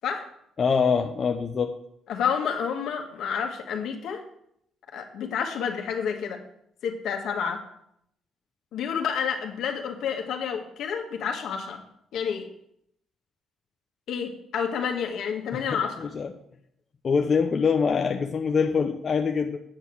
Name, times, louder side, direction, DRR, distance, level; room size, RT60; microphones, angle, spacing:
voice 1, 0.6-1.7 15.5-16.3 17.0-19.6, left 5 dB, 40° left, 4 dB, 0.7 m, -24 dB
voice 2, 2.1-4.2 4.9-6.4 6.8-7.6 8.7-11.8 12.1-12.5 14.1-16.1, left 7 dB, 70° left, 3 dB, 1.7 m, -29 dB
9.1 x 6.9 x 6.2 m, 0.73 s
cardioid pair, 115°, 0 cm